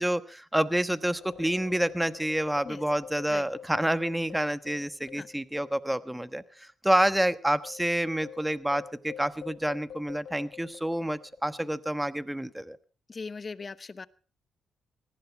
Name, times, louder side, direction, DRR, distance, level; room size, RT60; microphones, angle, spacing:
voice 1, 0.0-12.8, right 1 dB, 5° right, 12 dB, 1.2 m, -28 dB
sound 1, 1.1-5.9 6.1-6.3 6.9-11.7, left 8 dB, 75° left, 4.7 m, -47 dB
voice 2, 13.1-14.1, left 4 dB, 40° left, 15 dB, 1.0 m, -39 dB
19.0 x 15.5 x 4.5 m, 0.39 s
cardioid pair, 65°, 0 cm